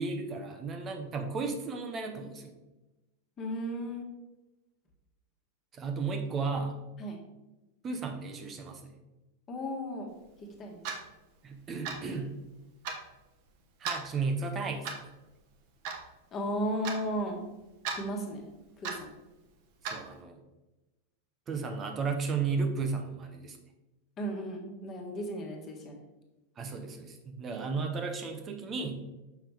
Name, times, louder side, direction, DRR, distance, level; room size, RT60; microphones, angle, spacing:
voice 1, 0.0-2.5 5.7-6.8 7.8-8.9 11.4-12.4 13.8-14.9 19.8-20.4 21.5-23.6 26.6-29.0, right 4 dB, 25° right, 5 dB, 0.9 m, -34 dB
voice 2, 3.4-4.1 7.0-7.2 9.5-10.1 10.4-10.8 16.3-17.4 18.0-18.5 18.8-19.1 24.2-26.0, equal, 25° left, 1 dB, 1.6 m, -35 dB
Clock, 10.8-11.0 11.8-12.1 12.8-13.0 13.8-14.0 14.8-15.1 15.8-16.0 16.8-17.0 17.8-18.0 18.8-19.0 19.8-20.0, right 5 dB, 45° right, 1.1 m, -35 dB
7.1 x 5.8 x 3.4 m, 1.0 s
figure-of-eight pair, 90°, 0 cm